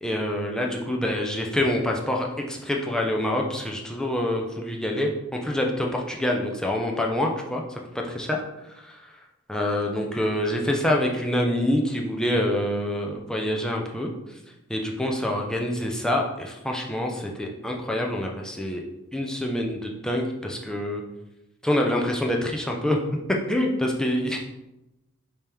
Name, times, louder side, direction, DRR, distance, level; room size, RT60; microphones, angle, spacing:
voice 1, 0.0-7.8 8.0-8.4 8.8-9.0 9.5-14.1 14.7-18.8 19.1-21.0 21.6-23.0 23.5-24.4, left 1 dB, 5° left, 0 dB, 0.4 m, -26 dB
5.1 x 2.9 x 3.4 m, 0.95 s
head